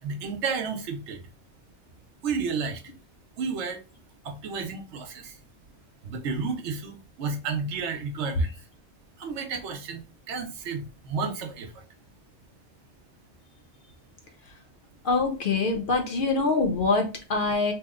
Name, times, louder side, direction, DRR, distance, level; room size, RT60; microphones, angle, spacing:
voice 1, 0.0-1.3 2.2-2.8 3.4-3.8 4.2-5.4 6.0-8.5 9.2-11.8, right 5 dB, 80° right, 1.0 m, -32 dB
voice 2, 15.0-17.7, left 3 dB, 55° left, 0.7 m, -24 dB
2.8 x 2.1 x 3.6 m
omnidirectional pair, 1.2 m